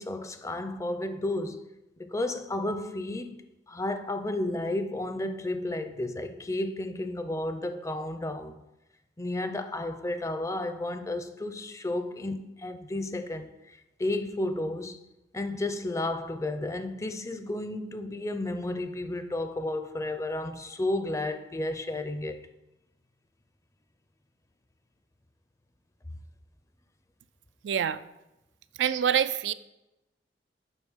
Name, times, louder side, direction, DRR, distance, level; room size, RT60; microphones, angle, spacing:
voice 1, 0.0-1.7 2.0-8.6 9.2-15.0 15.3-22.5, left 2 dB, 15° left, 0.5 m, -32 dB
voice 2, 27.6-28.0 28.8-29.5, right 8 dB, 75° right, 0.4 m, -25 dB
8.1 x 5.4 x 5.5 m
head